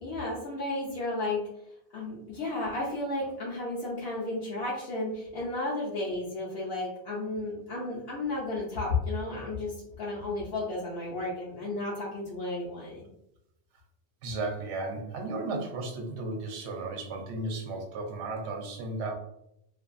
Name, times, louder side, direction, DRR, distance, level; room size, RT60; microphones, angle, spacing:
voice 1, 0.0-1.4 1.9-13.0, left 2 dB, 60° left, -6 dB, 0.8 m, -33 dB
voice 2, 14.2-19.1, right 2 dB, 70° right, 2 dB, 0.8 m, -34 dB
2.5 x 2.3 x 2.4 m, 0.80 s
omnidirectional pair, 1.2 m